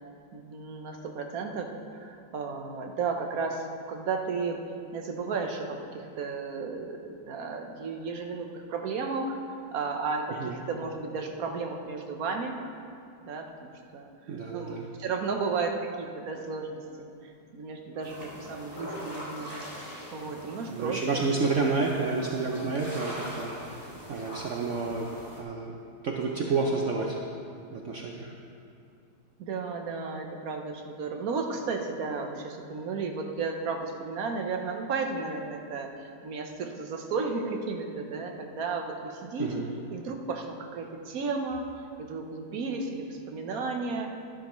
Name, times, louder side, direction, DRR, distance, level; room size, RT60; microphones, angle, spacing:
voice 1, 0.3-9.4 9.7-12.6 13.3-14.1 14.5-19.5 20.1-21.3 29.4-35.9 36.2-39.5 39.9-41.6 42.0-44.1, right 4 dB, 55° right, 3 dB, 1.1 m, -33 dB
voice 2, 14.3-14.9 20.7-25.1 25.4-25.8 26.0-27.2 27.7-28.3 39.4-39.7, right 4 dB, 80° right, 0 dB, 0.6 m, -30 dB
sound 1, 18.0-25.4, equal, 10° right, 1.9 m, -42 dB
13.0 x 11.5 x 3.1 m, 2.5 s
omnidirectional pair, 2.2 m